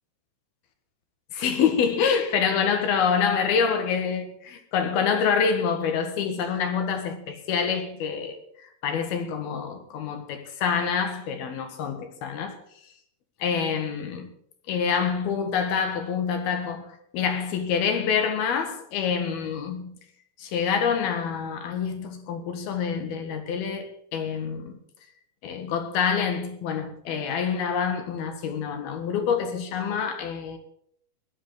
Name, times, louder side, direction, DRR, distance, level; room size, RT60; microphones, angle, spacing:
voice 1, 1.3-12.6 13.4-14.3 14.7-16.9 17.1-19.9 20.4-24.8 25.4-30.6, left 6 dB, 90° left, 3.6 m, -26 dB
17.0 x 12.0 x 4.9 m
omnidirectional pair, 4.2 m